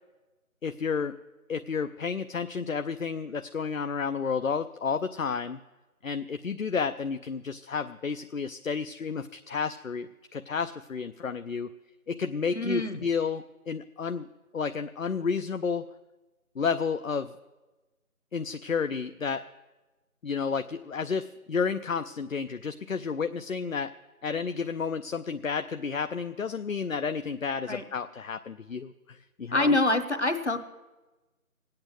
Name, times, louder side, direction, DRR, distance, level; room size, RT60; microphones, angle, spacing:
voice 1, 0.6-1.2 1.5-5.6 6.0-11.7 12.1-14.3 14.5-15.9 16.6-17.3 18.3-19.5 20.2-23.9 24.2-29.7, left 5 dB, 65° left, 9 dB, 0.6 m, -31 dB
voice 2, 12.5-13.0 27.7-27.8 29.5-30.6, left 2 dB, 50° left, 9 dB, 1.3 m, -25 dB
18.0 x 8.7 x 7.9 m, 1.1 s
figure-of-eight pair, 175°, 43 cm